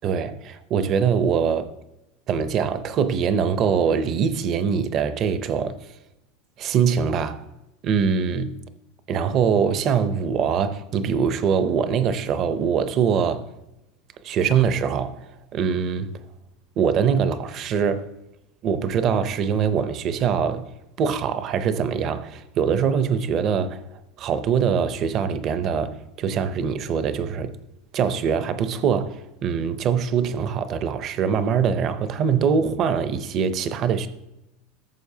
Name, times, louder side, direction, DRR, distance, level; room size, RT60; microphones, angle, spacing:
voice 1, 0.0-1.7 2.3-5.7 6.6-7.4 7.8-8.6 9.1-13.5 14.2-15.3 15.5-16.1 16.8-18.1 18.6-20.7 21.0-23.8 24.2-27.5 27.9-34.1, right 7 dB, 25° right, 0.5 m, -23 dB
14.0 x 7.0 x 2.7 m
supercardioid pair, 180°, 0 cm